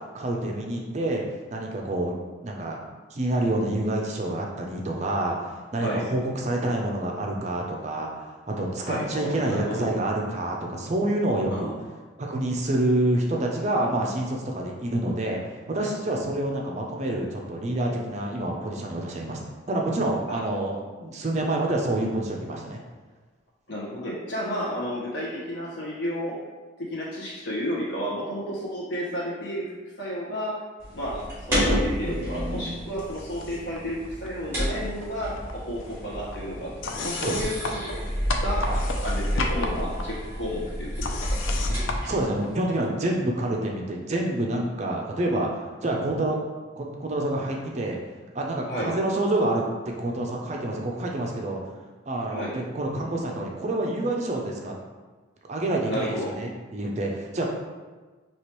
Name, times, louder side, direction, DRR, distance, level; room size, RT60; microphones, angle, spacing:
voice 1, 0.1-1.2 1.5-2.1 2.4-2.8 3.1-8.1 8.6-11.7 12.2-15.4 15.7-19.4 19.7-22.8 37.2-37.5 38.6-38.8 42.0-46.4 46.8-48.0 48.3-49.6 50.0-51.6 52.1-54.7 55.5-57.5, right 1 dB, 35° right, 0 dB, 0.5 m, -27 dB
voice 2, 8.8-9.9 11.5-11.9 20.3-20.4 23.7-26.4 26.8-30.6 30.9-38.1 38.4-38.7 39.0-41.3 48.7-48.9 52.3-52.5 55.9-56.4, equal, 60° left, -6 dB, 1.2 m, -32 dB
sound 1, 30.8-42.2, equal, 10° right, 1.4 m, -30 dB
sound 2, 33.0-33.8 34.0-35.1 35.3-42.9, left 3 dB, 80° left, 0.4 m, -35 dB
4.7 x 2.9 x 3.0 m, 1.3 s
head